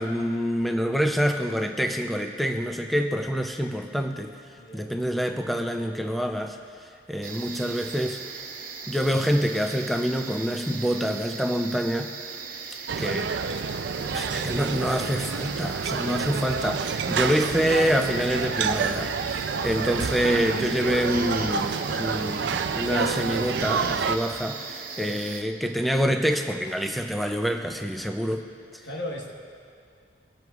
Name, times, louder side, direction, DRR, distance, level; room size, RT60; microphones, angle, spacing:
voice 1, 0.0-4.3 4.7-6.6 7.1-8.2 8.9-12.1 13.0-13.3 14.0-28.5, equal, ahead, 4 dB, 0.4 m, -26 dB
voice 2, 4.6-4.9 14.0-14.8 16.0-16.3 24.9-25.3 28.8-29.3, left 1 dB, 70° left, 0 dB, 1.4 m, -39 dB
sound 1, 7.2-25.4, right 5 dB, 50° right, 0.9 m, -38 dB
sound 2, 12.9-24.2, right 5 dB, 65° right, 0.4 m, -28 dB
23.0 x 7.7 x 2.4 m, 2.3 s
head